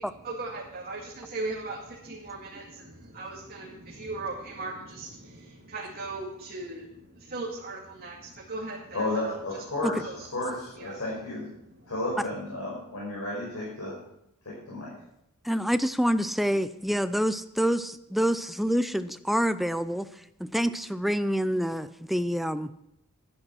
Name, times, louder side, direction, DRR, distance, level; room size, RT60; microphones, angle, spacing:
voice 1, 0.0-9.6 10.0-10.3 10.7-11.0 11.6-11.9, right 2 dB, 45° right, -5 dB, 2.3 m, -38 dB
voice 2, 8.9-11.5 11.9-13.9 14.4-14.9, left 2 dB, 75° left, -6 dB, 4.9 m, -32 dB
voice 3, 15.4-20.1 20.4-22.7, equal, ahead, 12 dB, 0.5 m, -27 dB
11.5 x 10.0 x 6.3 m, 0.80 s
head